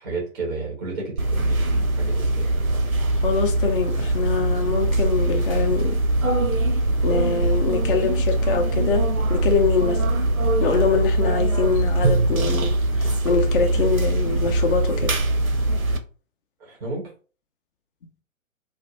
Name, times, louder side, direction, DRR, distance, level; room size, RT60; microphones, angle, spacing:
voice 1, 0.0-2.5 16.6-17.1, right 3 dB, 10° right, 0.4 m, -32 dB
sound 1, 1.2-16.0, right 2 dB, 85° right, 0.7 m, -22 dB
voice 2, 3.2-6.0 7.0-10.0 10.6-15.1, left 6 dB, 40° left, 0.5 m, -24 dB
2.4 x 2.1 x 3.0 m
figure-of-eight pair, 120°, 41 cm